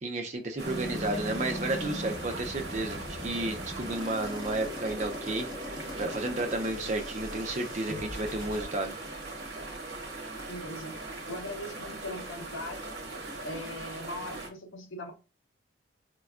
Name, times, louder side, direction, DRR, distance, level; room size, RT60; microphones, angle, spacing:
voice 1, 0.0-8.9, right 2 dB, 40° right, 0.5 m, -32 dB
sound 1, 0.6-8.6, left 1 dB, 10° left, 1.2 m, -40 dB
sound 2, 0.6-14.5, right 2 dB, 55° right, 0.9 m, -40 dB
voice 2, 10.5-12.9 13.4-15.1, left 1 dB, 90° left, 0.6 m, -40 dB
4.3 x 2.2 x 2.3 m
head